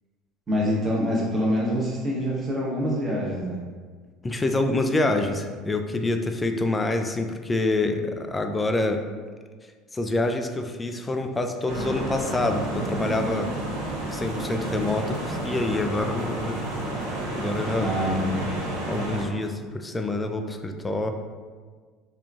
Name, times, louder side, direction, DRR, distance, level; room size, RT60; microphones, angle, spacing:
voice 1, 0.5-3.6 17.8-18.5, equal, 30° right, -5 dB, 1.0 m, -25 dB
voice 2, 4.2-9.0 9.9-13.5 14.1-16.6 17.3-17.9 18.8-21.1, left 2 dB, 20° left, 5 dB, 0.3 m, -26 dB
sound 1, 11.7-19.2, right 1 dB, 80° right, 0.7 m, -30 dB
3.6 x 2.4 x 2.3 m, 1.5 s
hypercardioid pair, 75°, 0 cm